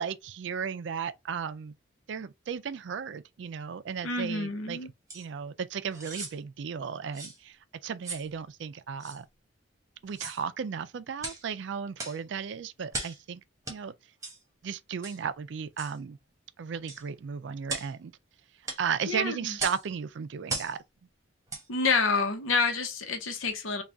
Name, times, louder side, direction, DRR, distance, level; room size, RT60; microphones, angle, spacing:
voice 1, 0.0-1.7 2.1-4.8 5.1-9.3 10.0-13.9 14.6-16.2 16.6-18.1 18.8-20.8, right 6 dB, 65° right, 0.4 m, -35 dB
voice 2, 4.0-4.9 19.1-19.5 21.7-23.8, left 4 dB, 85° left, 0.9 m, -28 dB
sound 1, 5.1-5.3 5.9-6.4 7.1-7.4 8.0-8.3 9.0-9.2 10.1-10.4 11.2-11.4 12.0-12.2 12.9-13.2 13.7-13.8 14.2-14.4 15.0-15.2 15.8-16.0 16.9-17.0 17.7-17.9 18.7-18.8 19.6-19.8 20.5-20.8 21.5-21.7 22.1-22.2, right 3 dB, 15° right, 1.0 m, -37 dB
3.4 x 2.3 x 3.7 m
head